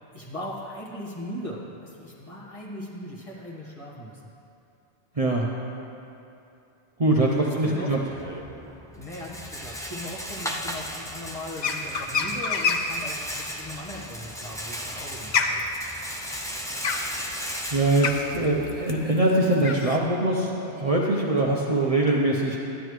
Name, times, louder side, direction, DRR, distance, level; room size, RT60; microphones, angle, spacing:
voice 1, 0.0-4.2 7.4-8.2 8.9-15.7, left 1 dB, 30° left, -5 dB, 1.4 m, -38 dB
voice 2, 5.1-5.5 7.0-8.0 17.7-22.6, right 2 dB, 40° right, -3 dB, 0.7 m, -23 dB
Rattle, 7.9-19.0, equal, 5° left, 0.4 m, -36 dB
sound 1, 11.6-13.0 14.4-20.0, left 4 dB, 50° left, 0.6 m, -27 dB
12.5 x 10.0 x 3.2 m, 2.8 s
omnidirectional pair, 1.1 m